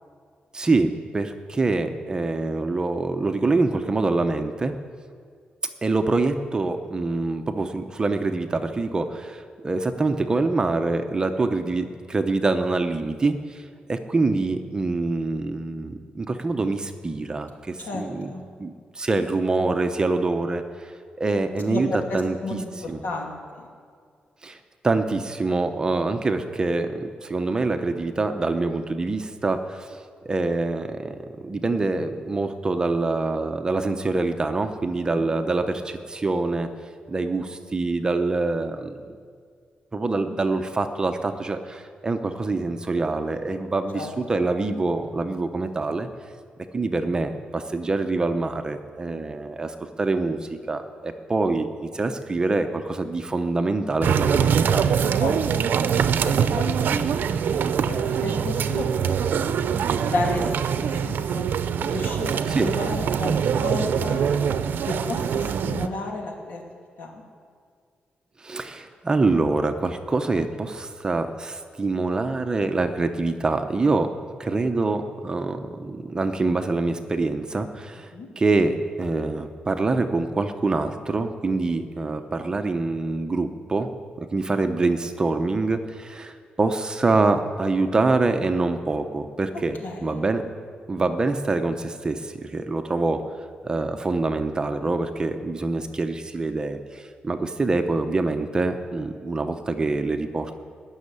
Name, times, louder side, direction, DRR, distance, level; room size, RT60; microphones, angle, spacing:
voice 1, 0.5-4.7 5.8-13.6 13.9-18.3 18.6-20.9 21.2-21.9 22.1-22.6 22.9-23.0 24.4-24.6 24.8-30.0 30.2-36.7 37.1-39.2 39.9-46.1 46.7-54.9 56.9-57.3 62.5-62.7 68.4-78.1 78.4-83.9 84.2-90.4 90.9-93.2 93.6-100.5, right 3 dB, 25° right, 7 dB, 0.8 m, -25 dB
voice 2, 17.8-18.4 21.6-23.7 43.9-44.1 55.2-55.7 56.1-56.7 57.0-57.1 57.5-59.2 59.9-61.4 61.8-64.3 64.9-66.6 67.0-67.2 78.1-78.3 89.8-90.3, left 2 dB, 75° left, 1 dB, 2.7 m, -32 dB
sound 1, 54.0-65.9, right 7 dB, 75° right, 0.6 m, -23 dB
19.0 x 6.4 x 9.8 m, 2.1 s
wide cardioid pair, 145°, 3 cm